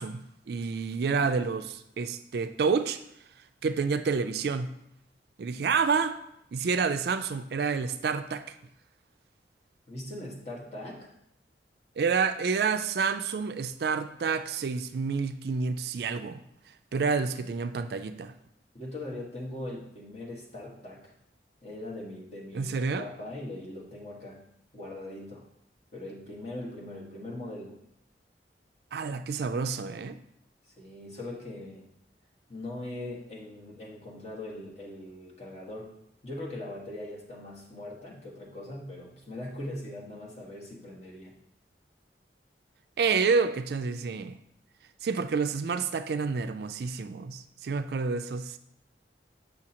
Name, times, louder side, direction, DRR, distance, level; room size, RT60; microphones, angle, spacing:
voice 1, 0.0-3.0 3.6-4.7 5.4-6.2 6.5-8.5 12.0-16.4 16.9-18.3 22.5-23.0 28.9-30.2 43.0-44.4 45.0-48.6, right 5 dB, 60° right, 0.3 m, -29 dB
voice 2, 9.9-11.1 18.7-21.1 21.6-24.4 24.7-25.5 25.9-27.8 30.6-31.9 32.5-36.0 36.2-41.3, left 1 dB, 40° left, 1.5 m, -41 dB
6.9 x 6.0 x 2.9 m
head